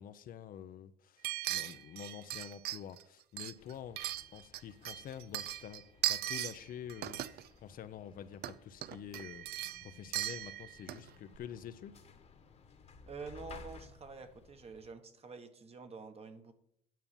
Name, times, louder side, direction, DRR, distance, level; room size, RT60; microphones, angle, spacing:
voice 1, 0.0-9.5 9.8-12.0, left 9 dB, 55° left, 12 dB, 0.7 m, -48 dB
sound 1, 1.2-3.0 3.4-4.6 4.8-6.6 6.9-7.5 8.3-8.5 8.8-11.1 11.3-11.4, right 14 dB, 70° right, 0.5 m, -38 dB
sound 2, 3.6-14.9, left 4 dB, 40° left, 1.3 m, -58 dB
voice 2, 13.1-16.5, right 4 dB, 35° right, 8 dB, 1.3 m, -48 dB
9.5 x 5.5 x 7.1 m, 0.71 s
cardioid pair, 110°, 17 cm